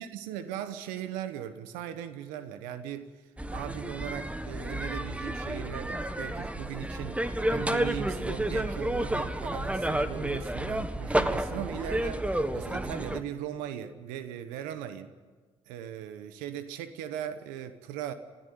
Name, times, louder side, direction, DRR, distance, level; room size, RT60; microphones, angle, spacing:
voice 1, 0.0-3.1 3.5-15.1 15.7-18.1, right 10 dB, 90° right, 11 dB, 1.1 m, -38 dB
sound 1, 3.4-13.2, right 1 dB, 10° right, 1.5 m, -31 dB
21.0 x 13.5 x 9.4 m, 1.4 s
supercardioid pair, 55°, 14 cm